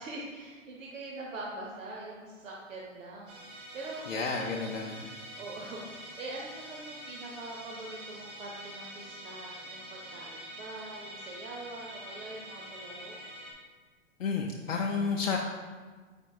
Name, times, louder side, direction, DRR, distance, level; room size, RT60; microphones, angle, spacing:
voice 1, 0.0-3.3 3.7-4.0 4.3-4.8 5.4-13.3, right 2 dB, 80° right, -3 dB, 0.8 m, -43 dB
Musical instrument, 3.3-13.5, equal, 35° right, 1.1 m, -45 dB
voice 2, 4.1-5.1 14.2-15.4, left 5 dB, 85° left, 0 dB, 0.6 m, -31 dB
5.2 x 4.4 x 2.3 m, 1.5 s
hypercardioid pair, 115°, 39 cm